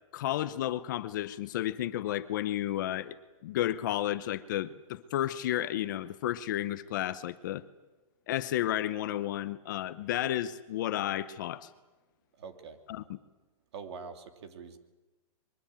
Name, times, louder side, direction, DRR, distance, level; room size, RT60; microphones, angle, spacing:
voice 1, 0.1-3.1 3.4-7.6 8.3-11.7 12.9-13.0, left 13 dB, 35° left, 13 dB, 0.8 m, -32 dB
voice 2, 12.4-12.8 13.7-14.8, right 5 dB, 50° right, 8 dB, 2.8 m, -44 dB
23.0 x 22.5 x 9.0 m, 1.1 s
hypercardioid pair, 175°, 18 cm